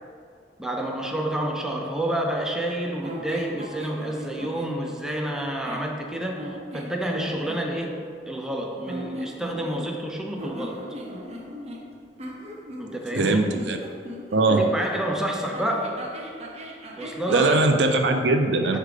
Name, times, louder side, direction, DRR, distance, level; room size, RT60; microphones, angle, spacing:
voice 1, 0.6-10.9 12.8-13.6 14.5-15.9 17.0-17.6 18.7-18.8, right 1 dB, 5° right, 0 dB, 0.5 m, -29 dB
sound 1, 3.0-4.8 5.3-5.9 6.4-7.6 8.8-10.1 10.4-14.9 15.5-17.7, equal, 40° right, 0.7 m, -38 dB
voice 2, 13.1-13.8 14.3-14.7 17.3-18.8, right 2 dB, 75° right, 5 dB, 0.5 m, -21 dB
6.5 x 3.2 x 4.9 m, 2.3 s
head